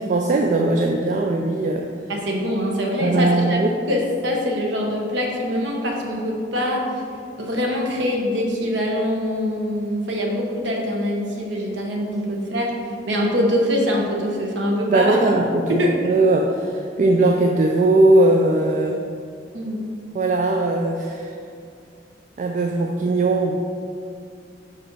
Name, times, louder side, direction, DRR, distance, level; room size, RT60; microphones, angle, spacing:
voice 1, 0.0-1.9 3.0-3.8 14.9-19.0 20.1-21.4 22.4-23.5, right 2 dB, 40° right, 2 dB, 0.3 m, -19 dB
voice 2, 2.1-6.8 7.4-15.2 15.7-16.1 19.5-19.8, equal, 75° right, 0 dB, 1.1 m, -24 dB
5.4 x 5.0 x 4.6 m, 2.4 s
head